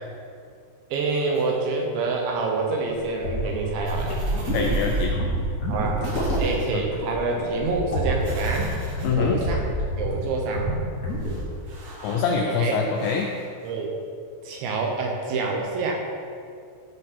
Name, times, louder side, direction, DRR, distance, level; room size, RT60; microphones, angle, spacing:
voice 1, 0.9-4.1 5.7-6.1 6.4-8.7 9.1-9.7 10.0-10.7 12.5-12.8 13.6-13.9 14.4-16.2, right 3 dB, 70° right, 0 dB, 3.0 m, -27 dB
sound 1, 1.3-1.8 3.8-5.1 5.4-5.5 6.0-6.7 8.2-9.1 10.6-10.7 11.1-12.2 12.9-13.7, right 1 dB, 50° right, 2.2 m, -43 dB
sound 2, 3.2-10.2 10.5-10.8 11.0-11.5, right 1 dB, 30° left, 1.8 m, -27 dB
voice 2, 4.5-5.1 6.7-6.8 9.0-9.4 12.0-13.3, left 6 dB, 85° left, 2 dB, 2.6 m, -24 dB
15.0 x 7.3 x 4.3 m, 2.3 s
omnidirectional pair, 5.9 m